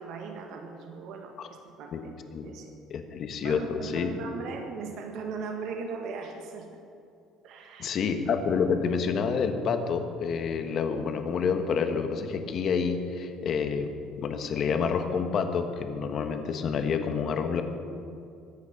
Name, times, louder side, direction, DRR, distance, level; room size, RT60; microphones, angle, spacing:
voice 1, 0.0-2.1 2.4-2.7 3.4-6.8 7.4-8.0, right 5 dB, 60° right, 3 dB, 1.6 m, -38 dB
voice 2, 2.9-4.1 7.8-13.9 14.2-17.6, left 6 dB, 45° left, 6 dB, 1.3 m, -28 dB
22.5 x 9.5 x 5.3 m, 2.5 s
cardioid pair, 150°, 0 cm